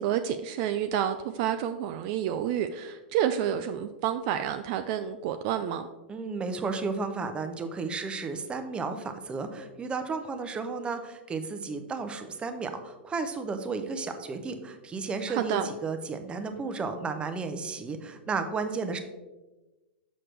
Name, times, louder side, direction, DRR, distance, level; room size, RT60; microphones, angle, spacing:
voice 1, 0.0-5.9 15.3-15.7, right 10 dB, 45° right, 8 dB, 0.4 m, -29 dB
voice 2, 6.1-19.0, right 4 dB, 15° right, 7 dB, 0.7 m, -33 dB
6.4 x 6.0 x 3.3 m, 1.1 s
hypercardioid pair, 125°, 6 cm